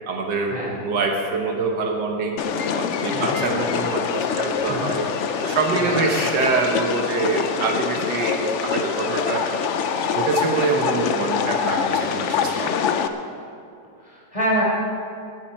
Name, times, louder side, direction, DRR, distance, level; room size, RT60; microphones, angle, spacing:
voice 1, 0.1-2.4 2.7-5.1 5.4-9.5 10.1-12.9, right 3 dB, 85° right, 1 dB, 1.9 m, -25 dB
sound 1, 2.4-13.1, left 7 dB, 60° left, 0.8 m, -25 dB
voice 2, 14.0-14.6, right 1 dB, 20° left, -5 dB, 3.9 m, -26 dB
19.0 x 9.9 x 4.4 m, 2.5 s
omnidirectional pair, 1.8 m